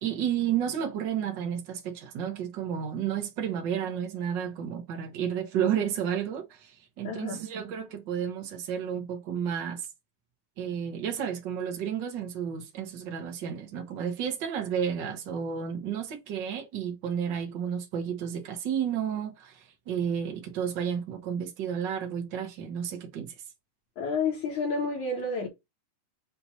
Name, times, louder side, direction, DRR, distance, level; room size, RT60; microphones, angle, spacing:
voice 1, 0.0-9.8 10.6-23.3, right 8 dB, 75° right, 1.0 m, -32 dB
voice 2, 7.0-7.4 24.0-25.5, left 4 dB, 60° left, 2.8 m, -30 dB
7.6 x 2.8 x 5.7 m
omnidirectional pair, 3.9 m